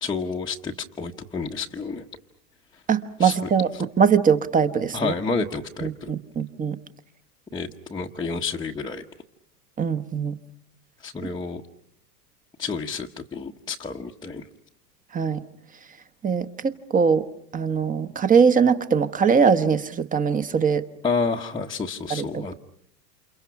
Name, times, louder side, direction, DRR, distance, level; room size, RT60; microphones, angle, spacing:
voice 1, 0.0-2.1 2.7-2.8 3.2-3.4 3.7-3.8 4.9-6.1 7.5-9.1 11.0-11.6 12.6-14.5 21.0-22.5, left 4 dB, 10° left, -2 dB, 1.0 m, -30 dB
voice 2, 2.9-3.7 4.0-5.1 5.8-6.8 9.8-10.3 15.1-15.4 16.2-17.3 17.5-20.8 22.1-22.5, right 6 dB, 15° right, 11 dB, 1.1 m, -21 dB
29.0 x 28.5 x 5.9 m, 0.67 s
hypercardioid pair, 115°, 50 cm